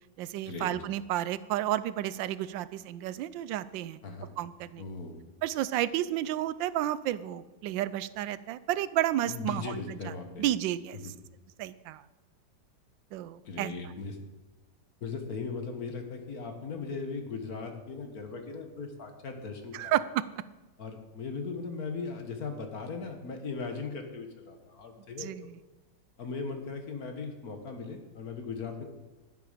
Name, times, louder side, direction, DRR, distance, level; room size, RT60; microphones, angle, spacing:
voice 1, 0.2-4.0 4.4-4.8 5.4-10.1 10.4-11.1 11.6-12.0 13.1-13.7 19.7-20.2 25.2-25.6, right 13 dB, 85° right, 16 dB, 1.3 m, -31 dB
voice 2, 4.8-5.2 9.3-10.5 10.9-11.1 13.4-14.2 15.0-20.0 20.8-25.5 26.2-28.8, left 4 dB, 55° left, 5 dB, 1.7 m, -38 dB
11.0 x 11.0 x 5.0 m, 1.2 s
omnidirectional pair, 2.0 m